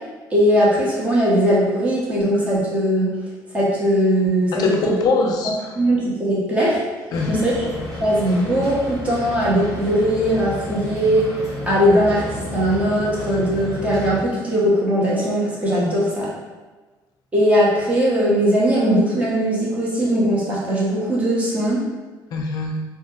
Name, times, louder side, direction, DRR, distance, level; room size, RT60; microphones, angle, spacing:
voice 1, 0.3-3.1 3.5-4.9 5.7-6.8 7.3-7.7 8.0-11.2 11.7-16.3 17.3-21.8, equal, 15° right, -7 dB, 0.8 m, -19 dB
voice 2, 4.5-5.7 7.1-7.4 22.3-22.8, left 3 dB, 55° left, 2 dB, 0.5 m, -22 dB
sound 1, 7.1-14.2, left 1 dB, 5° left, 1.1 m, -32 dB
2.7 x 2.2 x 3.7 m, 1.3 s
cardioid pair, 160°, 8 cm